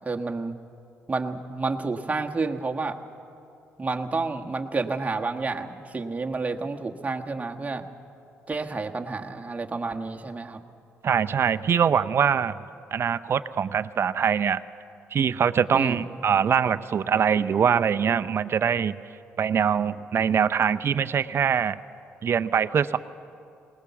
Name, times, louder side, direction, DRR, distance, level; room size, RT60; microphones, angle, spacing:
voice 1, 0.0-0.5 1.1-3.0 3.8-7.8 8.5-10.6 15.7-16.0, right 3 dB, 25° right, 2 dB, 1.5 m, -30 dB
voice 2, 11.0-12.6 12.9-14.6 15.1-19.0 19.4-21.8 22.2-23.0, right 7 dB, 50° right, 11 dB, 0.6 m, -23 dB
20.0 x 19.5 x 7.1 m, 2.7 s
supercardioid pair, 60°, 5 cm